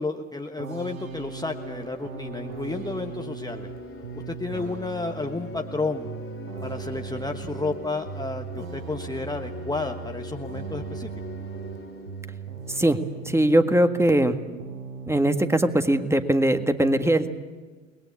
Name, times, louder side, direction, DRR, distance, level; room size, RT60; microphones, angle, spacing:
voice 1, 0.0-3.7 4.3-6.1 6.6-11.1, left 3 dB, 10° left, 4 dB, 1.3 m, -31 dB
sound 1, 0.6-14.3 14.6-15.8, right 6 dB, 85° right, 1.2 m, -38 dB
sound 2, 0.9-13.5, left 5 dB, 30° left, 2.8 m, -43 dB
voice 2, 12.7-13.0 13.2-14.4 15.1-17.3, right 1 dB, 5° right, 8 dB, 1.7 m, -21 dB
29.0 x 21.0 x 8.5 m, 1.4 s
figure-of-eight pair, 55°, 39 cm